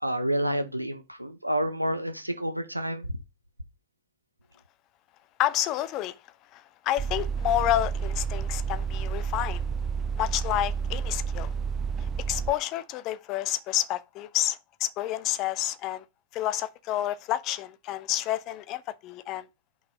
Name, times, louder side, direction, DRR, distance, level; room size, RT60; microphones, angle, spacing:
voice 1, 0.0-3.1, right 1 dB, 90° right, 0.6 m, -29 dB
voice 2, 5.4-6.1 6.5-9.6 10.2-11.5 12.2-16.0 16.3-19.5, left 13 dB, 40° left, 0.6 m, -29 dB
sound 1, 7.0-12.5, right 6 dB, 25° right, 0.4 m, -30 dB
5.8 x 5.5 x 5.1 m
figure-of-eight pair, 90°, 0 cm